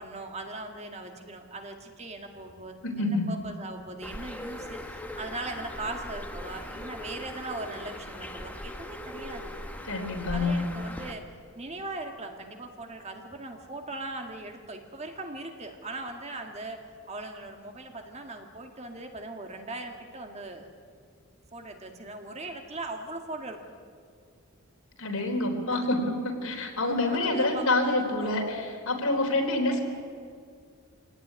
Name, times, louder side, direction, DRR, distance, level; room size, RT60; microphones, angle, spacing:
voice 1, 0.0-9.5 10.3-11.2 11.6-20.7 21.5-23.7 25.7-25.9 26.8-28.6, right 2 dB, 30° right, 4 dB, 1.9 m, -39 dB
voice 2, 2.8-3.3 9.9-10.7 25.0-29.8, left 2 dB, 75° left, 2 dB, 4.0 m, -27 dB
Bird, 4.0-11.1, left 1 dB, 5° left, 1.3 m, -40 dB
25.0 x 18.0 x 9.7 m, 2.1 s
head